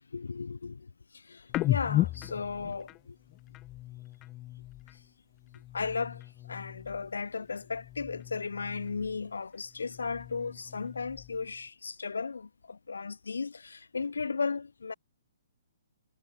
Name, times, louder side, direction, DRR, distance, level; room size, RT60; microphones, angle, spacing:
voice 1, 0.1-3.2 5.7-6.2 6.5-14.9, left 4 dB, 85° left, 7.2 m, -35 dB
sound 1, 1.5-5.1 5.4-7.2 7.5-9.4 9.7-11.6, left 16 dB, 25° left, 7.0 m, -36 dB
hypercardioid pair, 140°, 0 cm